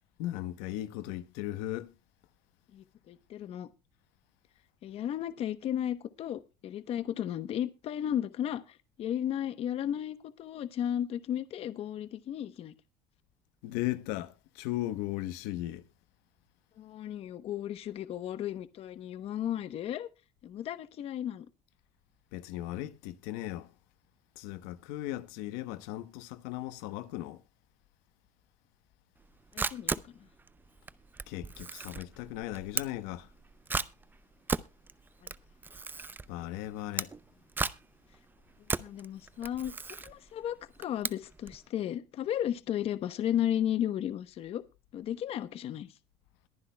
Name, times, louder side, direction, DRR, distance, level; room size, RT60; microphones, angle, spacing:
voice 1, 0.2-1.9 13.6-15.8 22.3-23.7 24.4-27.4 31.3-33.3 36.3-37.1, left 15 dB, 80° left, 1.0 m, -37 dB
voice 2, 2.7-3.7 4.8-12.7 16.8-20.1 20.4-21.5 29.5-30.1 38.7-39.7 40.0-44.6 44.9-45.9, left 10 dB, 45° left, 0.9 m, -34 dB
Camera, 29.2-41.6, right 4 dB, 15° right, 0.5 m, -37 dB
22.0 x 10.0 x 2.2 m
cardioid pair, 125°, 14 cm